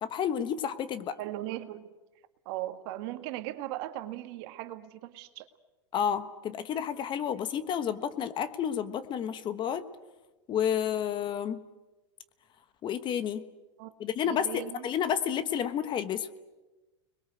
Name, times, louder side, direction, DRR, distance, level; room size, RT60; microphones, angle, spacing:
voice 1, 0.0-1.2 5.9-9.9 10.5-11.6 12.8-13.4 14.0-16.3, left 8 dB, 30° left, 12 dB, 1.3 m, -30 dB
voice 2, 1.2-1.9 2.5-5.5 13.8-13.9 14.3-14.9, right 15 dB, 55° right, 8 dB, 1.8 m, -38 dB
30.0 x 21.5 x 8.0 m, 1.1 s
supercardioid pair, 125°, 15 cm